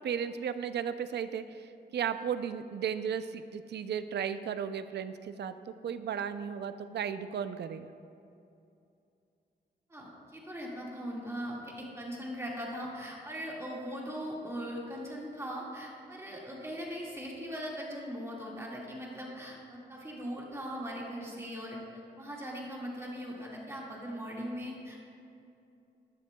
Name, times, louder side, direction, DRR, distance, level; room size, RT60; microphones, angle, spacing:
voice 1, 0.0-7.9, right 8 dB, 80° right, 11 dB, 0.4 m, -35 dB
voice 2, 9.9-21.8 22.2-25.1, equal, 15° right, -4 dB, 1.9 m, -40 dB
14.0 x 10.5 x 2.3 m, 2.6 s
wide cardioid pair, 135°, 17 cm